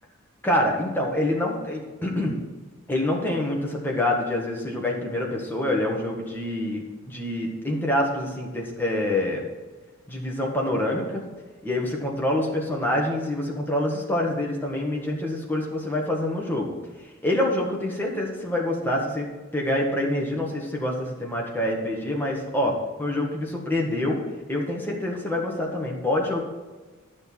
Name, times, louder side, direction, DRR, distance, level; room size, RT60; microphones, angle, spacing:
voice 1, 0.4-2.3 2.9-9.4 10.1-11.2 11.6-16.7 17.2-19.3 19.5-26.4, left 1 dB, 10° left, -2 dB, 1.6 m, -26 dB
11.5 x 6.4 x 4.7 m, 1.3 s
head